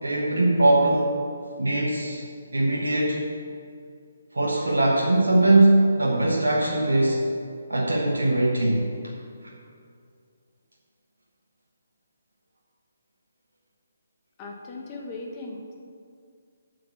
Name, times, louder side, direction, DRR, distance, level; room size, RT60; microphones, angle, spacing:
voice 1, 0.0-1.2 1.6-2.2 2.5-3.3 4.3-7.3 7.7-8.9 9.4-9.5, right 2 dB, 70° right, -2 dB, 1.2 m, -21 dB
voice 2, 14.4-15.7, left 2 dB, 25° left, 0 dB, 1.3 m, -38 dB
7.8 x 6.8 x 7.2 m, 2.3 s
figure-of-eight pair, 140°, 0 cm